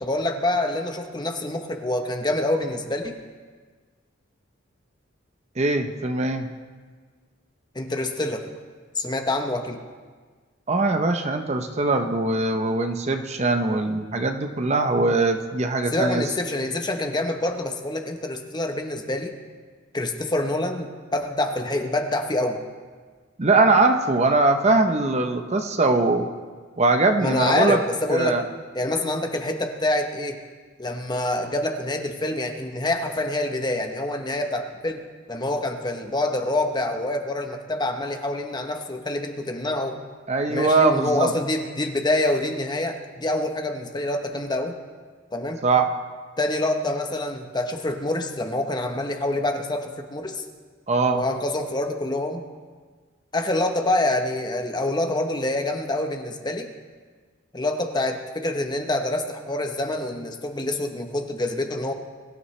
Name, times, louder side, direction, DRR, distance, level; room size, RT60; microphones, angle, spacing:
voice 1, 0.0-3.2 7.7-8.5 9.0-9.8 15.9-19.3 19.9-22.6 27.2-28.4 28.7-30.4 30.8-35.0 35.3-40.0 40.5-44.7 45.3-45.6 46.4-50.4 51.1-52.4 53.3-56.7 57.5-61.9, left 1 dB, 20° left, 4 dB, 0.9 m, -26 dB
voice 2, 5.6-6.5 10.7-16.2 23.4-26.3 26.8-27.8 28.1-28.4 40.3-41.3 45.6-45.9 50.9-51.2, right 3 dB, 35° right, 6 dB, 0.8 m, -21 dB
23.0 x 12.5 x 3.2 m, 1.5 s
head